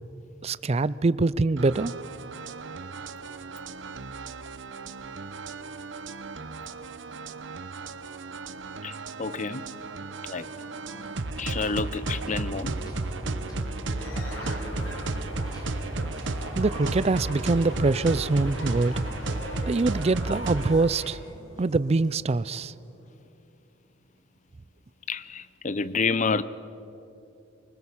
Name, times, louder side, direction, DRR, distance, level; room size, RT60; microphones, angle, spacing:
voice 1, 0.4-1.9 16.5-19.1 19.7-21.2 21.6-22.7, right 3 dB, 35° right, 0.4 m, -24 dB
sound 1, 1.6-20.8, right 3 dB, 65° right, 0.9 m, -34 dB
voice 2, 8.8-9.6 10.2-10.5 11.4-12.7 25.1-26.4, left 4 dB, 40° left, 0.7 m, -29 dB
sound 2, 9.7-23.0, equal, 20° left, 4.9 m, -46 dB
sound 3, 14.0-21.1, left 1 dB, 75° left, 4.2 m, -41 dB
24.0 x 20.0 x 7.3 m
head